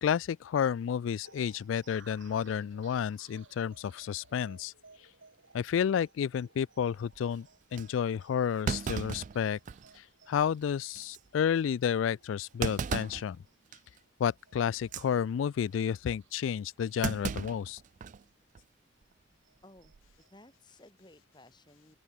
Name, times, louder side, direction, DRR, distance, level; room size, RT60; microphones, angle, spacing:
voice 1, 0.0-4.7 5.5-7.5 7.7-9.6 10.0-13.4 14.2-17.8, left 8 dB, 90° left, 0.3 m, -31 dB
sound 1, 1.2-18.1 18.5-18.6 19.0-20.6, right 4 dB, 85° right, 5.4 m, -62 dB
Thump thud, 7.1-7.2 7.8-7.9 8.7-10.0 10.4-10.5 11.0-11.2 12.6-13.3 13.7-14.0 14.8-15.1 17.0-18.2 18.6-18.7 19.8-20.1, right 5 dB, 40° right, 0.3 m, -35 dB
voice 2, 19.6-22.0, left 1 dB, 25° left, 3.6 m, -57 dB
open air
head